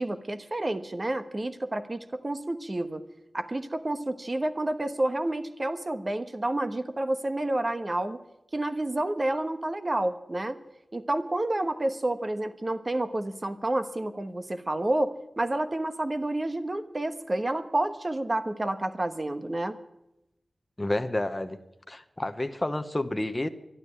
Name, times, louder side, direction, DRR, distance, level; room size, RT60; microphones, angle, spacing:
voice 1, 0.0-3.0 3.3-8.2 8.5-10.6 10.9-19.8, right 1 dB, 30° right, 9 dB, 1.2 m, -29 dB
voice 2, 20.8-21.6 21.9-23.5, left 1 dB, 20° left, 8 dB, 0.9 m, -29 dB
12.5 x 11.5 x 9.9 m, 0.90 s
wide cardioid pair, 70°, 0 cm